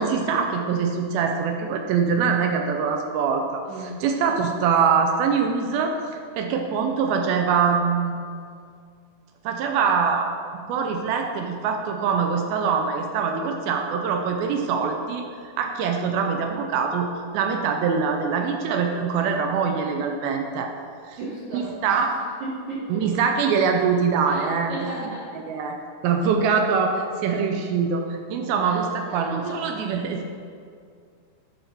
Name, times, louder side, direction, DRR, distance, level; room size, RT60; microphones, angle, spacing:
voice 1, 0.0-8.2 9.4-10.3 10.5-15.3 15.6-17.1 17.3-20.7 21.1-21.2 21.5-22.1 22.9-24.9 25.5-25.8 26.0-30.3, right 6 dB, 80° right, 4 dB, 2.4 m, -23 dB
voice 2, 3.7-4.0 18.9-19.1 21.2-23.0 24.3-25.4 28.6-29.6, right 2 dB, 60° right, -7 dB, 2.3 m, -36 dB
10.5 x 4.4 x 5.5 m, 2.2 s
omnidirectional pair, 4.5 m